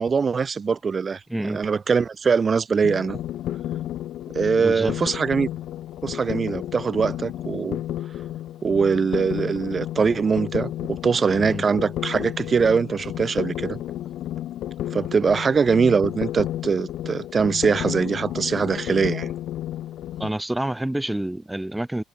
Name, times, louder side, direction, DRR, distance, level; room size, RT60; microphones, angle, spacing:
voice 1, 0.0-1.2 1.5-3.2 4.3-5.5 6.0-7.8 8.6-10.7 11.0-13.8 14.9-19.3, right 5 dB, 25° right, 4.6 m, -22 dB
voice 2, 1.3-1.6 4.6-5.2 11.4-11.7 20.2-22.0, right 1 dB, 5° right, 6.6 m, -28 dB
sound 1, 2.8-20.3, left 13 dB, 55° left, 5.8 m, -32 dB
cardioid pair, 160°, 0 cm